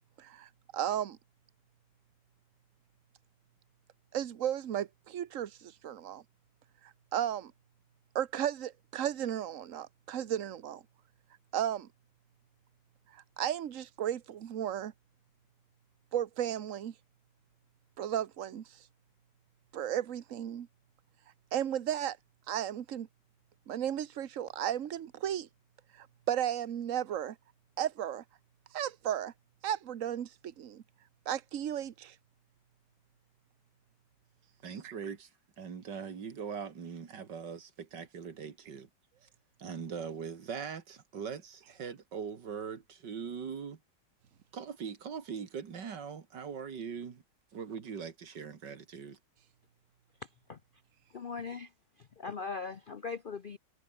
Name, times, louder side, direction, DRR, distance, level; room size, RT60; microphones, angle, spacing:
voice 1, 0.2-1.2 4.1-6.2 6.8-7.5 8.1-10.8 11.5-11.9 13.1-14.9 16.1-16.9 18.0-18.8 19.7-20.7 21.5-22.2 22.5-23.1 23.7-25.5 26.0-27.4 27.8-28.2 28.7-29.3 29.6-30.8 31.3-32.1, right 10 dB, 50° right, 1.3 m, -34 dB
voice 2, 34.6-35.3 35.6-38.9 39.2-39.3 39.6-43.8 44.5-47.2 47.5-49.2, right 6 dB, 80° right, 2.6 m, -41 dB
voice 3, 51.1-51.7 52.0-53.6, left 5 dB, 55° left, 0.6 m, -39 dB
omnidirectional pair, 1.9 m